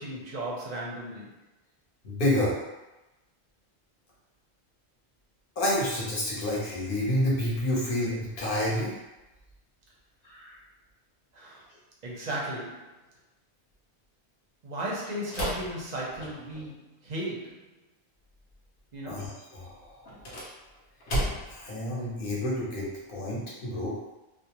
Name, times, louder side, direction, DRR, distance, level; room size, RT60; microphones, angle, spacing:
voice 1, 0.0-1.4 11.3-11.6 12.0-12.9 14.6-17.7 18.9-19.3, right 1 dB, 50° right, -4 dB, 0.6 m, -36 dB
voice 2, 2.0-2.5 5.6-8.9 10.2-10.6 19.0-20.1 21.5-24.0, left 1 dB, 55° left, -5 dB, 0.9 m, -29 dB
sound 1, 15.3-16.7 20.0-21.7, equal, 85° left, 1.0 m, -33 dB
2.4 x 2.1 x 2.8 m, 1.0 s
omnidirectional pair, 1.1 m